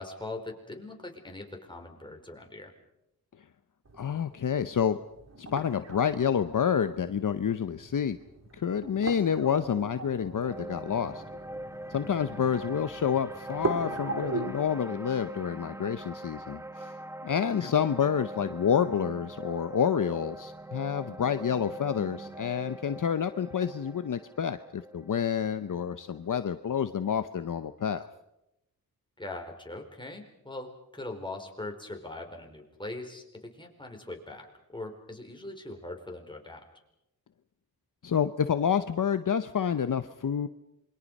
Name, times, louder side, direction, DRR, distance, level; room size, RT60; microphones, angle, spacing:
voice 1, 0.0-2.7 17.6-17.7 29.2-36.6, left 2 dB, 15° left, 2 dB, 4.5 m, -41 dB
sound 1, 3.8-14.5, right 3 dB, 45° right, 3.0 m, -40 dB
voice 2, 4.0-5.0 5.4-8.2 8.5-11.2 11.9-16.9 17.2-28.1 38.0-40.5, left 8 dB, 60° left, 10 dB, 0.8 m, -28 dB
sound 2, 10.5-26.7, right 1 dB, 10° right, 0.9 m, -42 dB
27.5 x 23.0 x 5.4 m, 0.87 s
wide cardioid pair, 80°, 37 cm